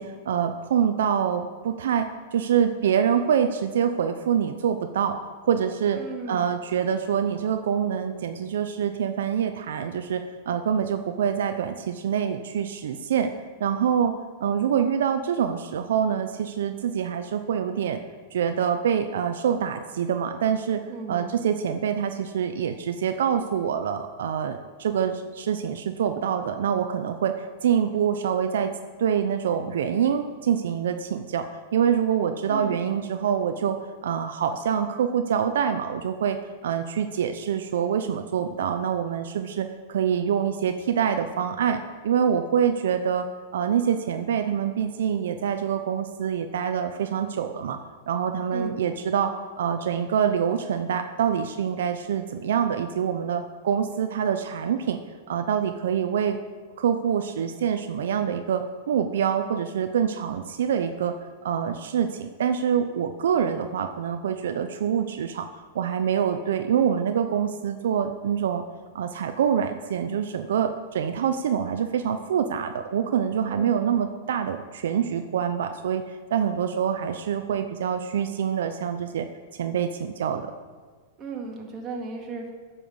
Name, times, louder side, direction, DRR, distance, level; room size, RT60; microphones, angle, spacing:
voice 1, 0.0-5.2 5.4-6.0 6.3-13.3 13.6-14.1 14.4-18.0 18.3-20.8 21.1-28.7 29.0-36.4 36.6-43.3 43.5-47.8 48.1-55.0 55.3-56.4 56.8-61.1 61.4-65.5 65.7-68.6 68.9-79.3 79.5-80.5, right 8 dB, 80° right, 8 dB, 0.5 m, -25 dB
voice 2, 5.9-6.4 20.9-21.3 32.5-32.9 48.5-48.7 73.5-73.9 81.2-82.5, right 4 dB, 25° right, 0 dB, 2.0 m, -36 dB
9.2 x 5.5 x 7.1 m, 1.5 s
hypercardioid pair, 135°, 0 cm